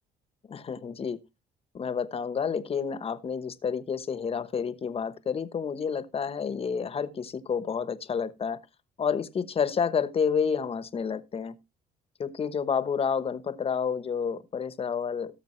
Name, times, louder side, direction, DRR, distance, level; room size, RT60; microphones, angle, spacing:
voice 1, 0.4-1.2 1.7-8.6 9.0-11.6 12.2-15.4, left 6 dB, 35° left, 1.1 m, -29 dB
18.0 x 6.6 x 3.2 m
cardioid pair, 110°, 17 cm